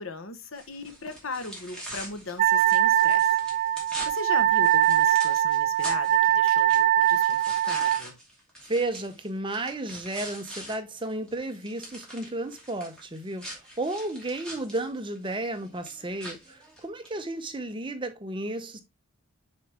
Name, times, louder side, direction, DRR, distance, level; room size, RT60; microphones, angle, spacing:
voice 1, 0.0-3.8 4.1-8.2, left 3 dB, 65° left, 1.1 m, -38 dB
sound 1, 0.6-10.8 11.1-17.2, equal, 5° left, 2.6 m, -43 dB
Wind instrument woodwind instrument, 2.4-8.0, right 12 dB, 40° right, 0.3 m, -22 dB
voice 2, 8.7-18.8, right 2 dB, 25° right, 0.8 m, -33 dB
6.7 x 4.9 x 3.3 m
head